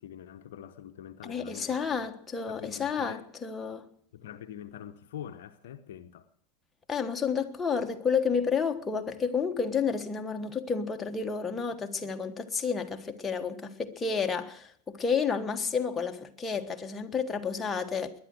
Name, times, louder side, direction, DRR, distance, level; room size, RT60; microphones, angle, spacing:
voice 1, 0.0-2.1 2.5-3.2 4.1-6.3, left 10 dB, 60° left, 0.8 m, -44 dB
voice 2, 1.2-3.9 6.9-18.1, left 6 dB, 15° left, 1.3 m, -30 dB
20.5 x 10.5 x 6.5 m
figure-of-eight pair, 85°, 0 cm